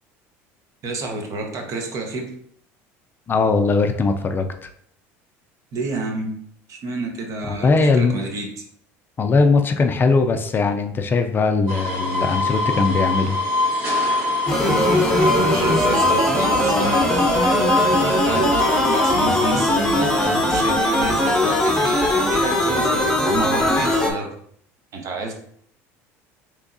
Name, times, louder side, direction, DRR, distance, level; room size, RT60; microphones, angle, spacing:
voice 1, 0.8-2.3 5.7-6.3 6.7-8.6 14.6-24.3 24.9-25.3, right 3 dB, 50° right, 3 dB, 0.8 m, -30 dB
voice 2, 3.3-4.7 7.5-8.2 9.2-13.4, left 4 dB, 30° left, 6 dB, 0.4 m, -19 dB
sound 1, 11.7-19.6, left 2 dB, 75° right, 1.4 m, -23 dB
sound 2, 14.5-24.1, left 1 dB, 10° left, 0.8 m, -20 dB
3.4 x 3.1 x 2.6 m, 0.64 s
supercardioid pair, 90°, 7 cm